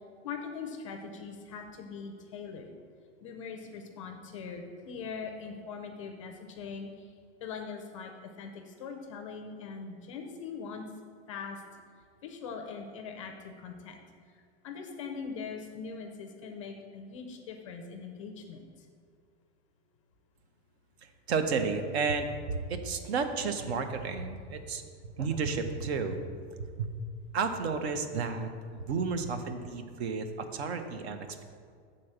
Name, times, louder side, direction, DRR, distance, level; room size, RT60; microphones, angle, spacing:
voice 1, 0.2-2.7 3.2-6.9 7.4-10.8 11.3-11.6 12.2-14.0 14.6-18.6, left 5 dB, 30° left, 4 dB, 0.4 m, -41 dB
voice 2, 21.3-26.2 26.6-26.9 27.3-31.4, right 5 dB, 65° right, 8 dB, 0.8 m, -32 dB
7.4 x 3.9 x 6.5 m, 2.1 s
supercardioid pair, 175°, 34 cm